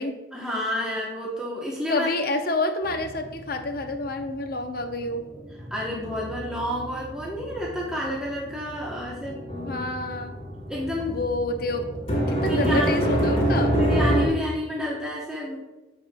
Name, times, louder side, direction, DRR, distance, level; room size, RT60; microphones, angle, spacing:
voice 1, 0.3-2.1 5.6-9.8 10.7-11.2 12.4-12.9 13.8-15.6, left 1 dB, 5° right, -5 dB, 0.9 m, -30 dB
voice 2, 1.9-5.2 9.6-10.3 11.1-11.9 12.3-13.8, left 2 dB, 50° left, 6 dB, 0.7 m, -28 dB
sound 1, 2.8-4.5 4.8-14.3, right 1 dB, 30° left, 1.7 m, -27 dB
13.0 x 5.0 x 2.2 m, 1.1 s
head